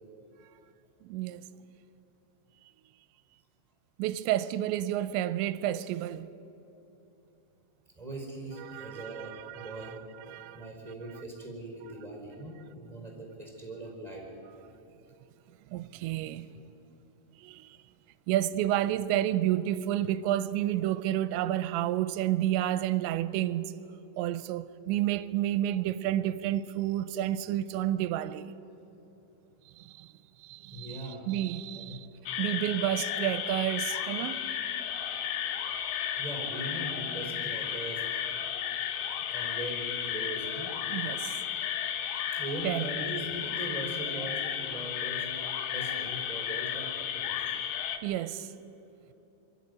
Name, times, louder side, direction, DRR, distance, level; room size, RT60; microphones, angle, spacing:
voice 1, 1.0-1.4 4.0-6.3 8.6-10.0 10.3-10.7 15.7-16.5 17.4-17.8 18.3-23.7 24.2-28.5 29.8-30.1 30.4-32.1 32.4-34.5 40.9-41.4 42.6-42.9 48.0-48.5, right 13 dB, 85° right, 2.9 m, -30 dB
voice 2, 8.0-10.0 10.5-14.3 30.7-31.2 31.9-32.0 36.2-38.0 39.3-40.7 42.3-45.3 45.7-47.4, right 2 dB, 10° right, 3.9 m, -40 dB
sound 1, 32.3-48.0, left 9 dB, 70° left, 2.7 m, -33 dB
23.0 x 13.5 x 9.7 m
omnidirectional pair, 5.2 m